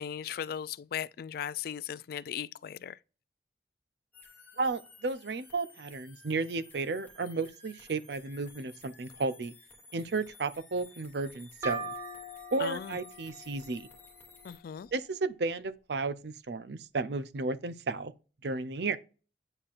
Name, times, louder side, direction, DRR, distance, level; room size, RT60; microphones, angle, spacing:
voice 1, 0.0-3.0 12.6-13.0 14.4-14.9, left 8 dB, 55° left, 0.3 m, -37 dB
sound 1, 4.1-14.6, left 3 dB, 10° left, 1.4 m, -55 dB
voice 2, 4.6-9.5 9.9-11.9 12.5-13.9 14.9-18.1 18.4-19.0, right 3 dB, 65° right, 0.6 m, -33 dB
sound 2, 11.6-15.2, right 2 dB, 15° right, 2.3 m, -42 dB
8.9 x 4.2 x 2.5 m
head